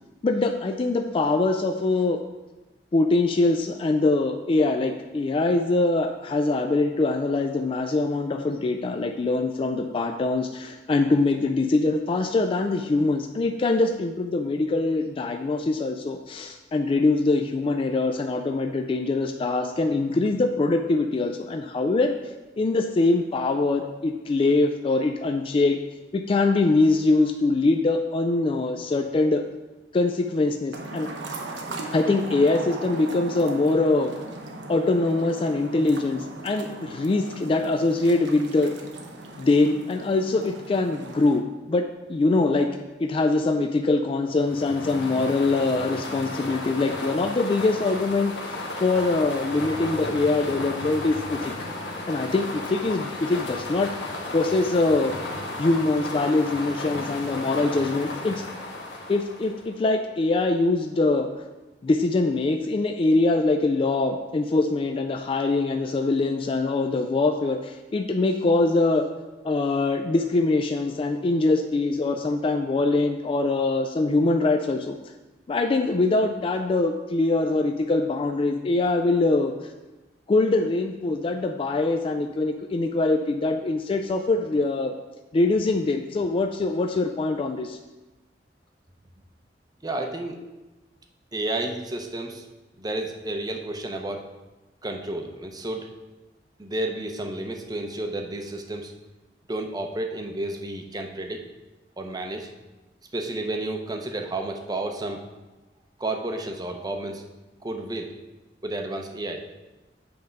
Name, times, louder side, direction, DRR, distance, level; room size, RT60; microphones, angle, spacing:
voice 1, 0.2-2.2 2.9-22.1 22.6-25.8 26.1-29.4 29.9-31.1 31.9-34.1 34.7-38.7 39.4-41.8 42.1-42.7 43.0-51.5 52.1-53.9 54.3-55.2 55.6-58.4 59.1-61.3 61.8-69.0 69.4-75.0 75.5-79.5 80.3-84.9 85.3-87.8, left 3 dB, 30° left, 4 dB, 0.3 m, -23 dB
sound 1, 30.7-41.4, right 2 dB, 90° right, 0.8 m, -38 dB
sound 2, 44.3-59.8, left 2 dB, 80° left, 1.2 m, -34 dB
voice 2, 89.8-90.4 91.3-92.5 92.8-94.3 94.8-95.9 96.6-98.9 99.5-101.4 102.0-102.5 103.1-105.2 106.0-107.2 107.6-108.1 108.6-109.4, right 2 dB, 20° right, 4 dB, 0.6 m, -31 dB
7.8 x 3.5 x 5.2 m, 1.1 s
head